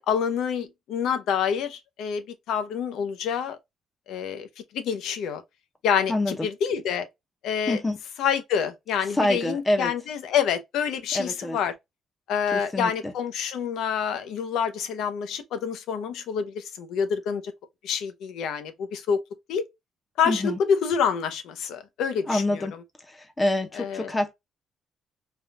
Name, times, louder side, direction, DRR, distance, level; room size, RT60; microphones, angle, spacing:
voice 1, 0.0-3.6 4.1-4.5 4.7-5.4 5.8-7.1 7.4-7.8 8.2-11.7 12.3-17.4 17.8-19.2 19.5-19.7 20.2-22.7 23.7-24.1, left 7 dB, 75° left, 0.7 m, -27 dB
voice 2, 6.1-6.5 7.7-8.0 9.1-9.9 11.1-11.6 12.5-13.1 20.3-20.6 22.3-22.7 23.1-24.3, left 1 dB, 10° left, 0.6 m, -26 dB
3.5 x 2.3 x 2.5 m
cardioid pair, 165°, 0 cm